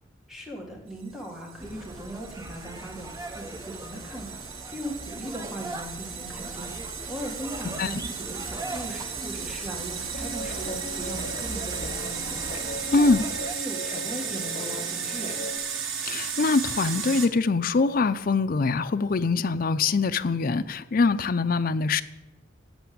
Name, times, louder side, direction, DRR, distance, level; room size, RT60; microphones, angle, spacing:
voice 1, 0.3-13.2 13.6-15.4, right 1 dB, ahead, -1 dB, 1.9 m, -39 dB
sound 1, 1.2-17.3, right 7 dB, 90° right, 1.1 m, -35 dB
sound 2, 1.6-13.5, right 1 dB, 20° right, 0.7 m, -40 dB
Guitar, 10.1-15.6, left 1 dB, 30° left, 1.0 m, -39 dB
voice 2, 12.9-13.2 16.0-22.0, left 4 dB, 45° left, 11 dB, 0.5 m, -23 dB
8.1 x 6.9 x 8.5 m, 1.0 s
head